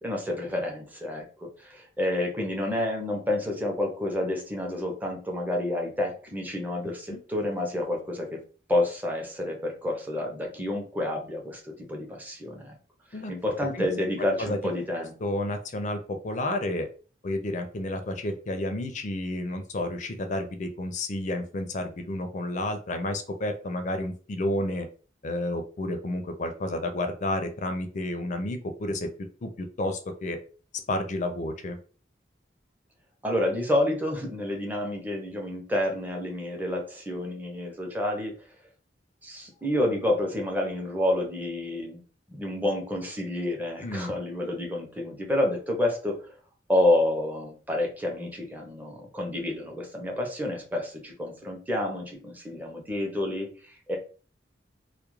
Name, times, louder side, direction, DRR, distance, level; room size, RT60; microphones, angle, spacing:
voice 1, 0.0-8.4 8.7-12.8 13.3-15.1 33.2-38.4 39.2-42.0 42.3-46.2 46.7-54.0, left 1 dB, 10° right, 0 dB, 0.6 m, -29 dB
voice 2, 14.2-14.6 15.2-16.9 17.2-24.9 25.2-29.1 29.4-30.4 30.9-31.8 43.8-44.1, left 1 dB, 40° left, 6 dB, 0.4 m, -31 dB
2.3 x 2.0 x 3.0 m, 0.38 s
head